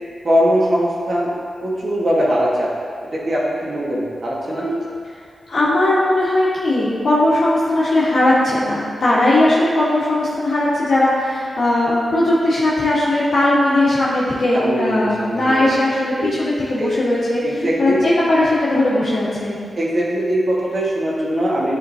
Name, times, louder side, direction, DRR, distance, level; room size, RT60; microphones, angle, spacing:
voice 1, 0.2-1.3 1.6-2.7 3.1-4.7 14.5-15.7 16.2-16.3 16.8-16.9 17.4-18.0 19.8-21.8, equal, 45° right, -5 dB, 1.4 m, -20 dB
voice 2, 4.5-4.8 5.5-19.6, left 1 dB, 70° left, -9 dB, 1.4 m, -18 dB
10.5 x 3.8 x 2.8 m, 2.1 s
wide cardioid pair, 115°, 0 cm